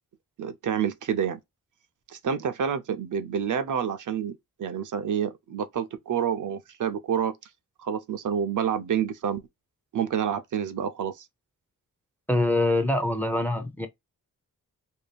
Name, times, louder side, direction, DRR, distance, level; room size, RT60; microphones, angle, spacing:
voice 1, 0.4-1.4 2.1-7.3 7.8-9.4 9.9-11.3, right 8 dB, 60° right, 0.5 m, -28 dB
voice 2, 12.3-13.9, left 1 dB, 5° left, 0.5 m, -24 dB
2.7 x 2.3 x 3.2 m
wide cardioid pair, 120°, 34 cm